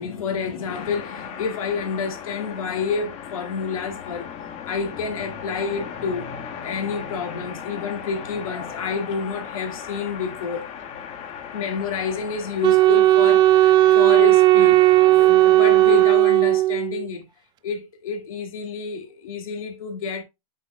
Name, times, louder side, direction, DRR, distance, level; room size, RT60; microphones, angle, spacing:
voice 1, 0.0-4.3 4.7-6.3 6.6-10.7 11.1-14.9 15.2-17.3 17.6-20.2, left 5 dB, 75° left, 2.2 m, -29 dB
sound 1, 0.7-16.1, left 7 dB, 40° left, 1.4 m, -37 dB
Wind instrument woodwind instrument, 12.6-17.1, right 16 dB, 25° right, 0.3 m, -15 dB
8.3 x 6.5 x 2.2 m
hypercardioid pair, 105°, 18 cm